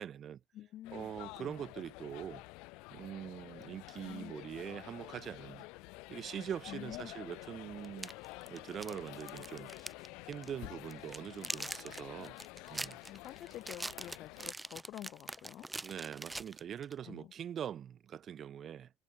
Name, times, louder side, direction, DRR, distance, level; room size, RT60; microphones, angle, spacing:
voice 1, 0.0-0.4 0.9-2.4 2.9-5.7 6.1-8.1 8.5-9.7 10.2-12.4 12.7-13.0 15.8-18.9, right 9 dB, 35° right, 3.7 m, -43 dB
voice 2, 0.5-1.1 1.4-1.6 4.0-4.3 6.7-7.1 13.0-15.7 17.0-17.3, left 13 dB, 45° left, 7.2 m, -48 dB
sound 1, 0.8-14.5, left 26 dB, 80° left, 3.5 m, -50 dB
sound 2, 7.8-10.1 10.3-10.5 10.9-17.0, right 2 dB, 10° right, 1.6 m, -43 dB
cardioid pair, 165°, 0 cm